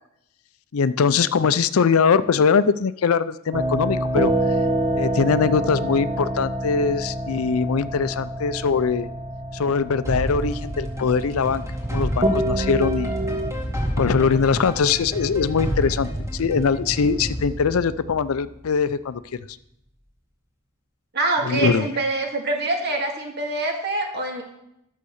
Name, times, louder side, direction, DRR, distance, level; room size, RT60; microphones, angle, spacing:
voice 1, 0.7-4.3 4.9-9.1 9.5-11.6 11.9-13.1 14.0-19.4 21.4-21.9, left 5 dB, 85° left, 15 dB, 0.5 m, -22 dB
sound 1, 3.5-13.5, right 1 dB, 30° right, 0.9 m, -26 dB
sound 2, 10.0-18.9, equal, 15° right, 2.1 m, -30 dB
voice 2, 21.1-24.4, right 2 dB, 50° right, 2 dB, 2.1 m, -25 dB
11.0 x 6.6 x 6.5 m, 0.81 s
head